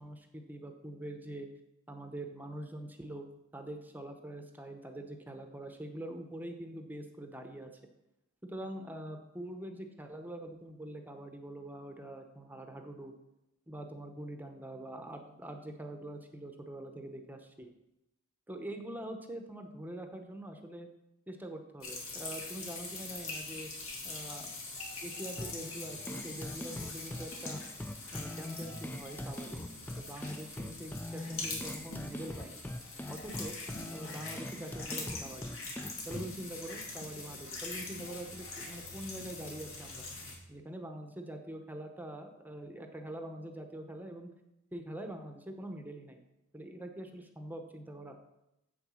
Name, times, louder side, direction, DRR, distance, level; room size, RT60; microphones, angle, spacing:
voice 1, 0.0-1.5 1.9-3.3 3.5-7.7 8.4-13.1 13.7-17.7 18.5-20.9 21.3-23.7 24.0-24.5 25.0-27.6 28.1-29.7 30.0-32.6 33.1-33.6 33.9-35.5 36.1-40.1 40.5-44.3 44.7-46.2 46.5-48.2, right 1 dB, 10° right, 5 dB, 0.9 m, -44 dB
sound 1, 21.8-40.4, left 3 dB, 70° left, 2.6 m, -43 dB
sound 2, 25.4-36.4, left 1 dB, 10° left, 0.3 m, -43 dB
7.9 x 6.9 x 6.3 m, 0.87 s
head